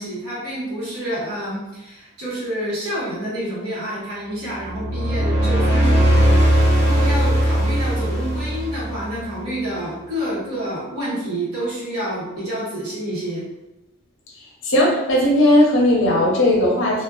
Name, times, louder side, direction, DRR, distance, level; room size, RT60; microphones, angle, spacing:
voice 1, 0.0-13.5, equal, 85° right, -8 dB, 1.2 m, -28 dB
sound 1, 4.6-9.3, right 1 dB, 30° right, 1.1 m, -18 dB
voice 2, 14.6-17.0, left 1 dB, 60° left, -1 dB, 0.6 m, -17 dB
2.5 x 2.3 x 2.3 m, 0.98 s
head